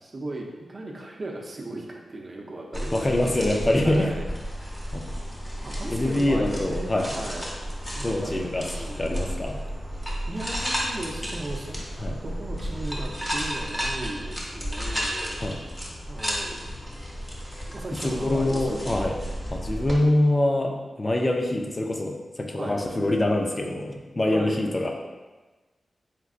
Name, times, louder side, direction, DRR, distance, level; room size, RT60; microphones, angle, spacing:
voice 1, 0.0-3.4 3.8-4.2 4.6-5.1 5.6-7.5 7.9-9.2 10.3-11.9 12.2-15.6 16.1-16.7 17.7-18.8 22.6-22.8 24.3-24.6, right 2 dB, 45° right, 0 dB, 0.6 m, -37 dB
sound 1, 2.7-20.0, equal, 10° left, 0.9 m, -32 dB
voice 2, 2.9-4.1 4.9-5.1 5.9-7.1 8.0-8.6 9.0-9.6 12.0-12.2 15.4-15.6 18.0-19.1 19.5-24.9, left 1 dB, 30° left, 2 dB, 0.4 m, -24 dB
4.4 x 3.7 x 2.4 m, 1.2 s
cardioid pair, 75°, 0 cm